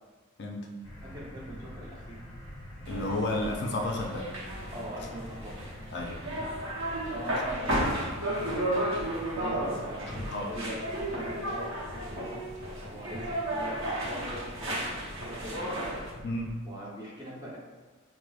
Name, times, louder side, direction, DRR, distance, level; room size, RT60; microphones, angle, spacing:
sound 1, 0.8-16.5, left 1 dB, 20° left, 1.1 m, -45 dB
voice 1, 1.0-2.2 4.7-5.6 7.1-9.1 9.4-12.4 12.9-15.8 16.6-17.6, equal, 20° right, -5 dB, 0.7 m, -42 dB
voice 2, 2.9-4.3 5.9-6.2 10.1-10.5 16.2-16.5, left 1 dB, 50° left, 0 dB, 0.4 m, -32 dB
sound 2, 2.9-16.1, right 1 dB, 60° right, 0.8 m, -34 dB
4.8 x 2.0 x 2.3 m, 1.4 s
head